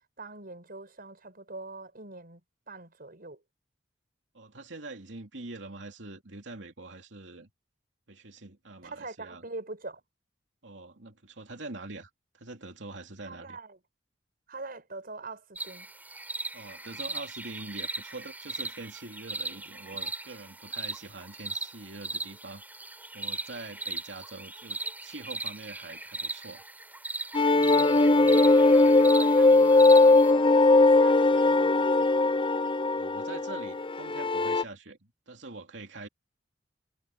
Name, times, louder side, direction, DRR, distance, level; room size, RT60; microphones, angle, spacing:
voice 1, 0.2-2.4 2.7-3.4 8.8-10.0 13.2-13.8 14.5-15.9 28.2-32.4, right 3 dB, 55° right, 5.1 m, -43 dB
voice 2, 4.3-7.5 8.1-9.4 10.6-13.6 16.5-22.6 23.1-26.6 32.9-35.0 35.3-36.1, right 2 dB, 85° right, 2.7 m, -44 dB
sound 1, 15.6-30.3, right 2 dB, 10° right, 5.7 m, -38 dB
sound 2, 27.3-34.6, left 2 dB, 30° left, 0.7 m, -20 dB
head